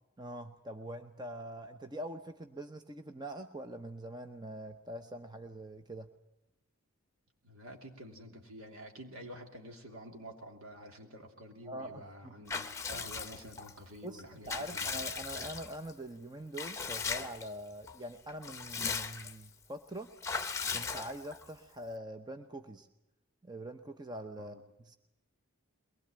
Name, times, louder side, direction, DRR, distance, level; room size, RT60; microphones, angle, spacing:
voice 1, 0.2-6.1 11.6-12.3 14.0-20.1 20.7-22.9 23.4-25.0, right 1 dB, 20° right, 7 dB, 0.8 m, -44 dB
voice 2, 7.4-14.9 24.4-24.6, equal, 70° right, 3 dB, 3.1 m, -49 dB
Water / Bathtub (filling or washing) / Liquid, 12.5-13.7 14.2-15.9 16.5-17.5 17.9-18.0 18.3-19.5 20.2-21.5, left 5 dB, 15° left, 0.9 m, -38 dB
22.5 x 20.0 x 8.8 m, 0.87 s
head